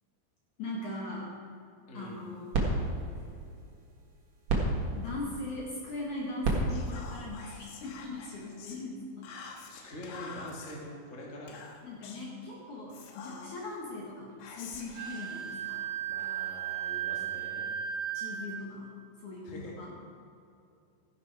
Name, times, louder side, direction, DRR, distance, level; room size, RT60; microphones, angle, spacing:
voice 1, 0.6-1.3 1.9-2.5 4.9-9.3 11.8-14.3 14.5-15.8 18.1-18.9 19.2-19.9, left 2 dB, 60° left, -3 dB, 2.1 m, -40 dB
voice 2, 1.9-2.3 9.7-11.6 16.0-17.7 19.4-19.7, left 1 dB, 45° left, -3 dB, 0.9 m, -44 dB
sound 1, 2.0-8.4, right 2 dB, 55° right, 2.0 m, -34 dB
Whispering, 6.7-8.8 9.2-10.8 11.5-12.3 12.9-13.8 14.4-16.3, left 5 dB, 80° left, 3.6 m, -47 dB
Wind instrument woodwind instrument, 15.0-18.7, right 9 dB, 85° right, 3.7 m, -35 dB
14.5 x 11.0 x 4.8 m, 2.5 s
omnidirectional pair, 5.5 m